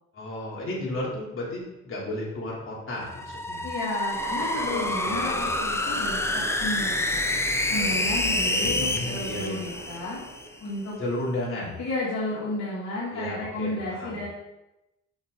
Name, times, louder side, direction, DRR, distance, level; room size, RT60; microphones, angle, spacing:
voice 1, 0.1-3.7 5.0-5.5 8.4-9.7 11.0-11.7 13.1-14.2, left 1 dB, 45° left, -5 dB, 3.0 m, -33 dB
sound 1, 3.0-10.5, left 1 dB, 10° left, 0.7 m, -28 dB
voice 2, 3.6-7.3 7.7-10.2 10.6-10.9 11.8-14.3, left 2 dB, 65° left, -7 dB, 2.6 m, -32 dB
Train, 4.1-11.0, right 2 dB, 30° right, 2.9 m, -40 dB
7.0 x 6.7 x 3.9 m, 0.93 s
cardioid pair, 90°, 30 cm